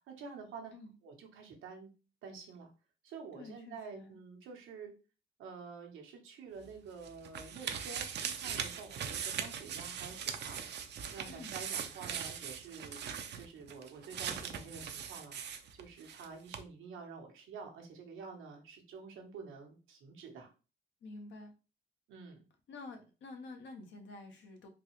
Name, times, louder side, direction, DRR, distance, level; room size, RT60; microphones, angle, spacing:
voice 1, 0.1-0.7 1.0-1.9 2.2-2.7 3.0-4.9 5.4-10.7 11.1-13.0 13.3-15.4 15.7-20.5 22.1-22.4, right 5 dB, 85° right, 2 dB, 1.1 m, -49 dB
voice 2, 3.3-4.2 11.3-11.6 21.0-21.5 22.7-24.7, left 3 dB, 70° left, 4 dB, 0.9 m, -49 dB
sound 1, 6.6-16.3 16.5-16.6, right 7 dB, 60° right, 0.6 m, -40 dB
3.9 x 2.4 x 3.1 m, 0.33 s
cardioid pair, 90°, 20 cm